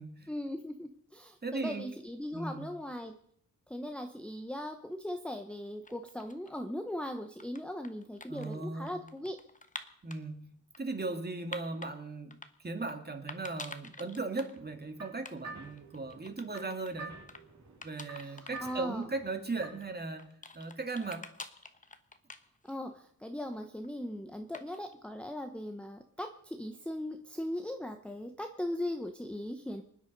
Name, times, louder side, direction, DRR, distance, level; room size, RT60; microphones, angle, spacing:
voice 1, 0.3-3.1 3.7-9.4 18.2-19.1 22.7-29.8, left 1 dB, 5° left, 5 dB, 0.8 m, -39 dB
voice 2, 1.4-1.9 2.3-2.7 8.3-9.0 10.0-10.5 10.8-17.2 17.8-20.3 20.5-21.2, right 3 dB, 25° right, 6 dB, 2.1 m, -37 dB
sound 1, 5.6-6.6 7.2-10.2 10.7-11.9 12.3-13.0 13.3-14.6 14.8-14.9 15.2-15.4 15.6-16.9 17.3-17.4 17.8-18.6 19.0-19.1 19.8-22.9 23.2-23.9 24.5-24.9, left 3 dB, 20° left, 1.1 m, -48 dB
sound 2, 14.6-20.0, right 4 dB, 50° right, 3.3 m, -49 dB
25.0 x 9.7 x 5.3 m, 0.69 s
wide cardioid pair, 115°, 36 cm